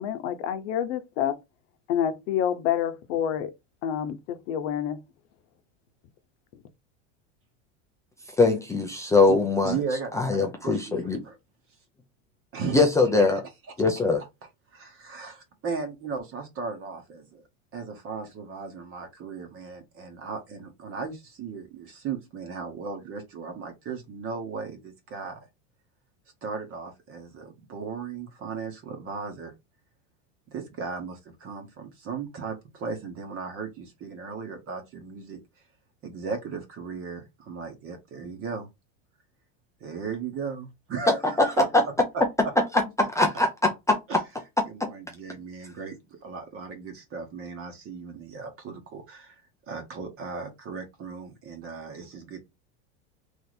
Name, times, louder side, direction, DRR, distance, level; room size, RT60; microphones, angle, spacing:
voice 1, 0.0-1.4 1.9-3.5 3.8-5.0, left 9 dB, 65° left, 0.8 m, -28 dB
voice 2, 8.4-9.8 10.1-11.2 12.7-13.4 13.8-14.2 41.4-41.5 43.0-44.0 44.8-44.9, left 3 dB, 10° left, 0.3 m, -22 dB
voice 3, 9.6-11.4 12.5-12.8 14.7-17.4 17.7-25.4 26.4-29.5 30.5-35.6 36.0-38.7 39.8-41.6 44.1-44.2 44.7-52.4, right 5 dB, 35° right, 1.1 m, -36 dB
3.3 x 2.7 x 4.0 m
supercardioid pair, 135°, 39 cm